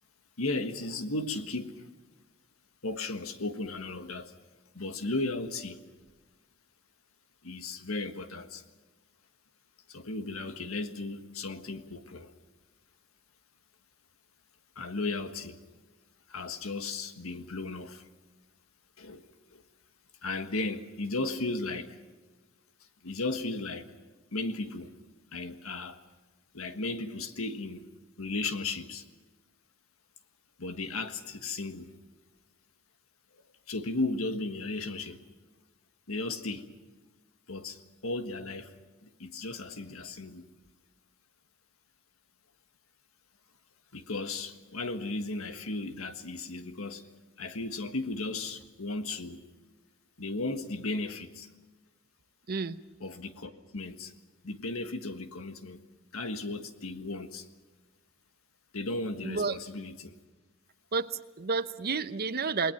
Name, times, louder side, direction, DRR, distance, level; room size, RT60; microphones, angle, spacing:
voice 1, 0.4-1.8 2.8-4.3 4.7-5.8 7.4-8.6 9.9-12.3 14.7-15.6 16.3-18.1 19.0-19.6 20.2-22.0 23.0-23.9 24.3-24.9 25.3-26.0 26.5-27.8 28.2-29.0 30.6-31.9 33.7-35.2 36.1-36.7 37.5-37.8 38.0-38.7 39.0-40.5 43.9-47.1 47.4-49.4 50.2-51.5 53.0-54.1 54.4-55.8 56.1-57.5 58.7-60.1, left 2 dB, 90° left, 8 dB, 1.6 m, -35 dB
voice 2, 52.5-52.8 59.2-59.6 60.9-62.7, right 4 dB, 45° right, 13 dB, 0.8 m, -31 dB
28.0 x 20.5 x 5.9 m, 1.2 s
head